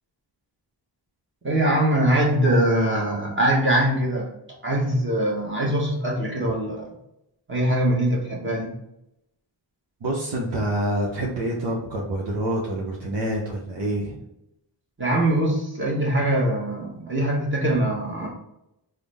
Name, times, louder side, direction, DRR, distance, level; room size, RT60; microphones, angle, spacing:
voice 1, 1.4-4.3 4.6-6.9 7.5-8.8 15.0-18.3, right 1 dB, 25° right, -3 dB, 1.1 m, -22 dB
voice 2, 10.0-14.2, right 1 dB, 70° right, -3 dB, 0.8 m, -27 dB
3.6 x 2.1 x 3.3 m, 0.83 s
cardioid pair, 60°, 45 cm